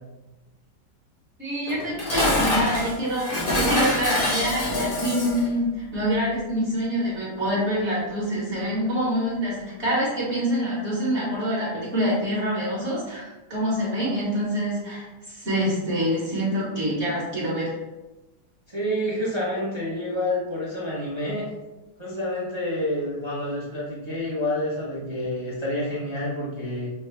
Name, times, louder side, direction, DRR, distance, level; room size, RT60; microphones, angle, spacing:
voice 1, 1.4-17.8, equal, 45° right, -7 dB, 1.3 m, -26 dB
Dishes pots and pans, 1.7-5.5, left 1 dB, 45° left, 0.7 m, -25 dB
voice 2, 18.7-21.5 22.0-26.9, left 1 dB, 25° right, -7 dB, 0.6 m, -28 dB
5.6 x 2.3 x 3.2 m, 1.1 s
omnidirectional pair, 2.0 m